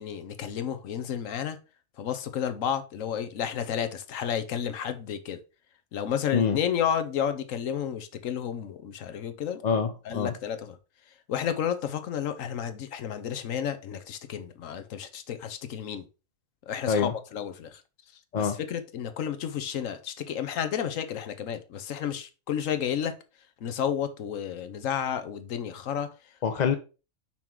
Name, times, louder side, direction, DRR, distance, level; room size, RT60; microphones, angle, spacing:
voice 1, 0.0-1.6 2.0-5.4 5.9-9.6 10.0-10.8 11.3-16.1 16.7-17.8 18.4-23.1 23.6-26.3, left 8 dB, 80° left, 1.2 m, -31 dB
voice 2, 9.6-10.3 16.9-17.1 18.3-18.6 26.4-26.7, left 6 dB, 50° left, 0.5 m, -25 dB
5.7 x 4.5 x 3.7 m
omnidirectional pair, 1.3 m